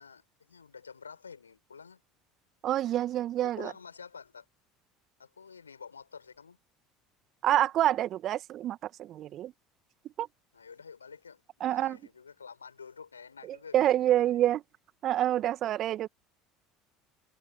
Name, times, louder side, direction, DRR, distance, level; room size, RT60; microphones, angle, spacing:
voice 1, 0.0-2.0 3.4-4.5 5.2-6.6 10.5-14.6, left 6 dB, 85° left, 6.8 m, -49 dB
voice 2, 2.6-3.7 7.4-9.5 10.2-10.3 11.6-12.0 13.7-14.6 15.0-16.1, right 12 dB, 45° right, 1.7 m, -27 dB
figure-of-eight pair, 65°, 0 cm